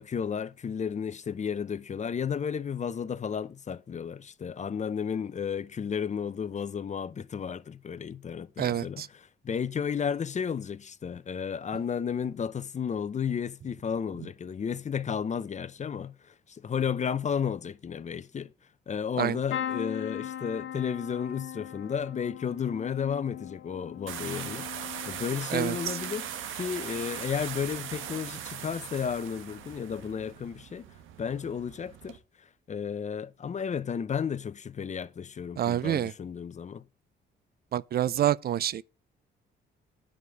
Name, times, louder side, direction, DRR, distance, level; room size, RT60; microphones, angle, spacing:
voice 1, 0.0-18.5 18.9-30.9 31.2-36.8, left 7 dB, 35° left, 0.6 m, -33 dB
voice 2, 8.6-9.1 19.2-19.4 25.5-25.8 35.6-36.1 37.7-38.8, right 11 dB, 50° right, 0.4 m, -27 dB
sound 1, 19.5-27.3 27.8-28.3 29.6-29.8 30.0-30.1, left 10 dB, 70° left, 1.0 m, -40 dB
sound 2, 24.1-32.2, right 10 dB, 85° right, 1.2 m, -40 dB
9.8 x 5.0 x 7.9 m
cardioid pair, 90°, 20 cm